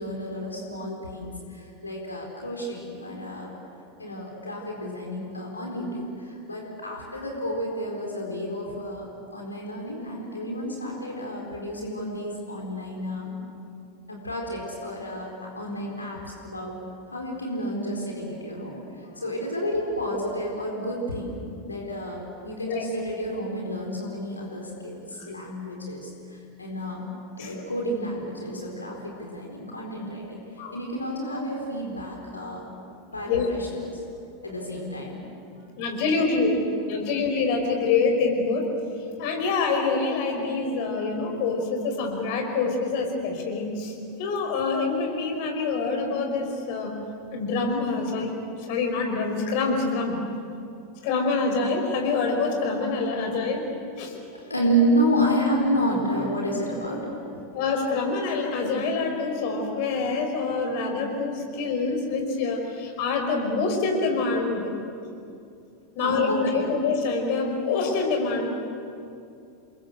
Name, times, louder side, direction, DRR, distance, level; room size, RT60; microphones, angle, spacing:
voice 1, 0.0-3.5 4.0-13.3 14.1-16.8 17.1-21.4 21.7-27.0 27.4-30.4 30.7-32.6 33.1-34.0 34.4-35.2 35.6-35.7 36.1-36.2 54.2-57.6 66.0-66.7, equal, 80° left, -1 dB, 4.3 m, -30 dB
voice 2, 35.8-36.6 36.9-38.7 39.2-43.9 44.2-46.9 47.3-48.3 48.7-50.2 51.0-53.7 54.0-54.1 57.5-64.7 65.9-68.5, left 4 dB, 50° left, 3 dB, 5.3 m, -26 dB
28.5 x 22.5 x 8.0 m, 2.5 s
figure-of-eight pair, 85°, 0 cm